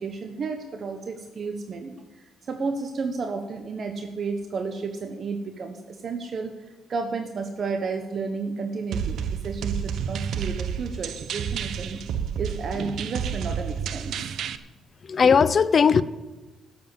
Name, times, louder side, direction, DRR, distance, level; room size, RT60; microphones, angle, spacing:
voice 1, 0.0-6.5 6.9-12.0 12.4-14.3, right 4 dB, 50° right, 6 dB, 1.1 m, -32 dB
sound 1, 8.9-14.6, right 8 dB, 75° right, 0.7 m, -30 dB
voice 2, 15.0-16.0, left 6 dB, 45° left, 16 dB, 0.6 m, -19 dB
12.5 x 7.5 x 8.5 m, 1.1 s
cardioid pair, 90°, 0 cm